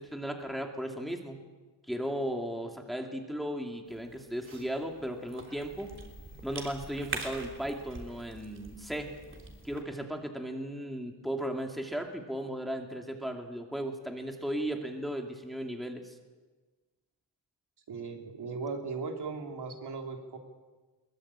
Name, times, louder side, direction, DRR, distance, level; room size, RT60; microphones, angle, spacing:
voice 1, 0.0-1.4 1.8-5.9 6.4-9.1 9.6-16.1, equal, ahead, 2 dB, 2.6 m, -36 dB
Cough / Chewing mastication, 3.9-9.8, right 3 dB, 30° right, 3.7 m, -44 dB
voice 2, 17.9-20.4, right 4 dB, 65° right, 3 dB, 3.8 m, -37 dB
23.5 x 22.5 x 8.9 m, 1.3 s
wide cardioid pair, 160°, 42 cm